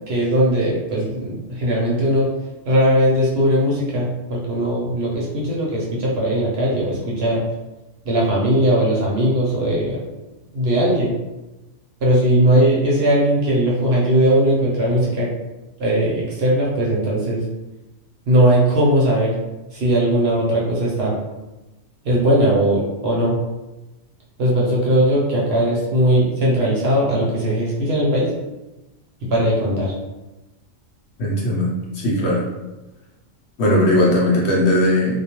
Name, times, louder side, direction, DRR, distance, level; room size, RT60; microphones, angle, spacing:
voice 1, 0.1-2.3 2.7-7.4 8.0-10.0 10.5-11.1 12.0-15.3 15.8-17.4 18.3-19.4 19.7-21.2 22.0-23.4 24.4-28.3 29.3-29.9, right 1 dB, 60° right, -4 dB, 0.8 m, -19 dB
voice 2, 31.2-32.4 33.6-35.2, left 1 dB, 65° left, -3 dB, 0.8 m, -18 dB
2.3 x 2.2 x 2.9 m, 1.0 s
omnidirectional pair, 1.4 m